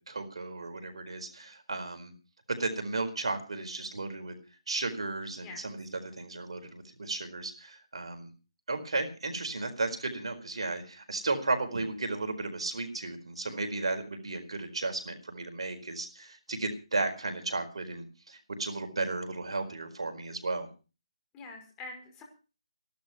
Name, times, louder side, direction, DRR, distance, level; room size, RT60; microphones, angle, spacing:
voice 1, 0.0-2.1 2.5-4.3 4.7-8.3 8.7-20.7, right 3 dB, 75° right, 6 dB, 4.5 m, -34 dB
voice 2, 21.3-22.2, left 3 dB, 15° left, 2 dB, 5.1 m, -45 dB
15.5 x 12.0 x 6.0 m, 0.35 s
hypercardioid pair, 160°, 3 cm